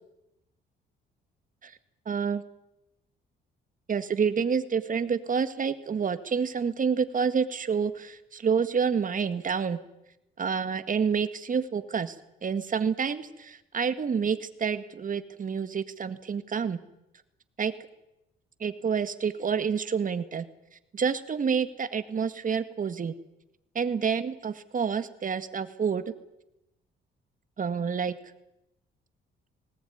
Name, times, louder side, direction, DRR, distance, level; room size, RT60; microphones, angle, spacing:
voice 1, 2.1-2.4 3.9-9.8 10.4-12.2 12.4-16.8 17.6-17.7 18.6-20.5 20.9-23.1 23.8-26.0 27.6-28.2, right 6 dB, 40° right, 11 dB, 2.0 m, -28 dB
19.5 x 19.0 x 9.5 m, 0.88 s
cardioid pair, 90°, 20 cm